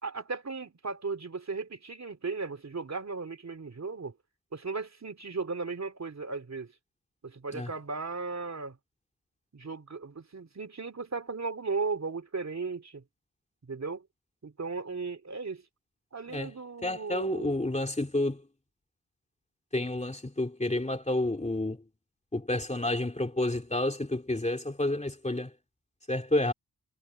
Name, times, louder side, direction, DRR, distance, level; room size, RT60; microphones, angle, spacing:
voice 1, 0.0-4.1 4.5-6.7 7.2-8.8 9.5-13.0 13.6-14.1 14.4-15.6 16.1-17.5, right 4 dB, 45° right, 3.0 m, -36 dB
voice 2, 16.8-18.4 19.7-21.8 22.3-25.5 26.1-26.5, left 1 dB, 20° left, 2.8 m, -30 dB
cardioid pair, 70°, 36 cm